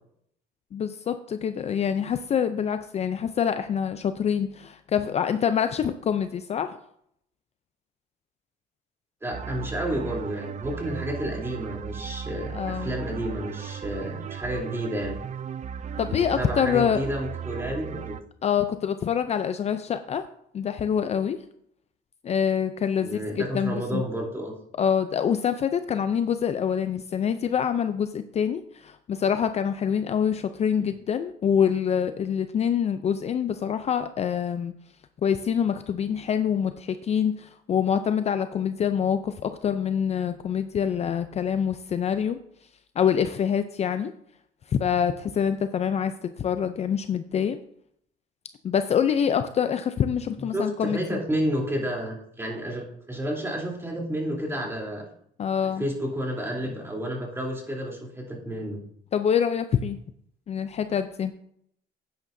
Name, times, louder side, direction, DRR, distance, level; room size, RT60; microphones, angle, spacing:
voice 1, 0.7-6.8 12.5-13.0 16.0-17.0 18.4-20.2 20.5-21.4 22.2-24.0 24.8-34.7 35.2-42.4 43.0-44.1 44.7-47.6 48.6-51.2 55.4-55.8 59.1-60.0 60.5-61.3, left 8 dB, 40° left, 10 dB, 0.5 m, -25 dB
voice 2, 9.2-15.2 16.1-18.2 23.0-24.5 50.4-55.0 55.6-58.8, equal, 15° right, -2 dB, 3.4 m, -31 dB
sound 1, 9.3-18.2, right 7 dB, 45° right, 0.5 m, -36 dB
11.0 x 9.1 x 2.7 m, 0.69 s
cardioid pair, 110°, 17 cm